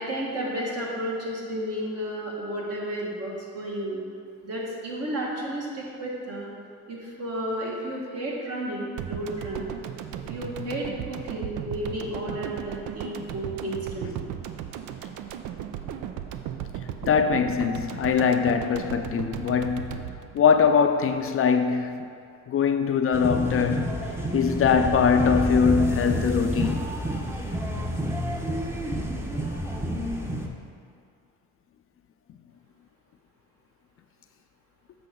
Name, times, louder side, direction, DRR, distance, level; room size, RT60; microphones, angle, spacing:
voice 1, 0.0-4.0 4.4-6.5 6.9-9.6 10.3-14.1, right 1 dB, 55° right, 1.8 m, -32 dB
sound 1, 9.0-21.3 21.6-21.7, right 9 dB, 90° right, 0.5 m, -36 dB
voice 2, 17.0-22.1 22.5-26.9, left 6 dB, 45° left, 0.4 m, -22 dB
sound 2, 23.1-30.5, equal, 10° right, 0.8 m, -29 dB
7.7 x 5.7 x 3.8 m
cardioid pair, 90°, 30 cm